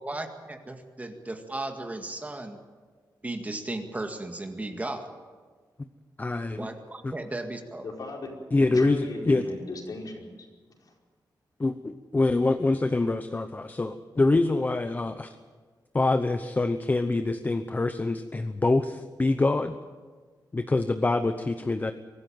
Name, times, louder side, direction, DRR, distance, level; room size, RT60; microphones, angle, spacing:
voice 1, 0.0-2.6 3.2-5.1 6.6-7.9, right 2 dB, 20° right, 5 dB, 1.9 m, -35 dB
voice 2, 6.2-6.7 7.0-7.1 8.5-9.4 11.6-15.3 15.9-19.7 20.5-21.9, left 2 dB, 25° left, 9 dB, 0.9 m, -25 dB
voice 3, 7.8-8.3 8.6-10.5, left 2 dB, 60° left, 0 dB, 5.0 m, -36 dB
24.0 x 13.5 x 9.1 m, 1.5 s
wide cardioid pair, 110°, 7 cm